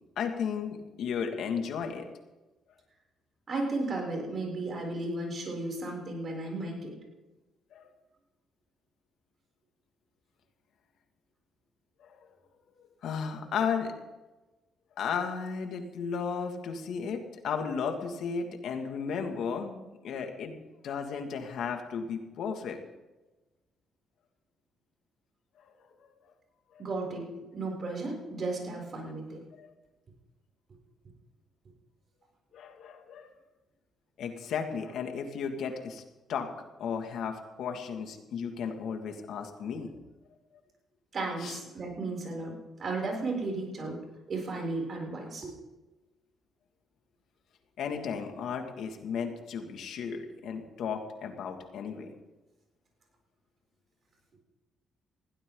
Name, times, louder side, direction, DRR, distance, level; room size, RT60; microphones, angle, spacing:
voice 1, 0.2-2.1 7.7-7.9 12.0-12.3 13.0-13.9 15.0-22.8 25.6-25.7 26.0-26.1 26.7-26.8 29.0-29.1 29.6-29.7 32.5-33.3 34.2-36.0 36.3-36.5 36.8-39.9 41.4-41.6 47.8-52.1, left 6 dB, 75° left, 4 dB, 2.4 m, -34 dB
voice 2, 3.5-6.9 26.8-29.4 41.1-44.0 44.3-45.5, right 2 dB, 45° right, 0 dB, 7.0 m, -34 dB
20.5 x 16.0 x 4.0 m, 1.1 s
cardioid pair, 90°, 0 cm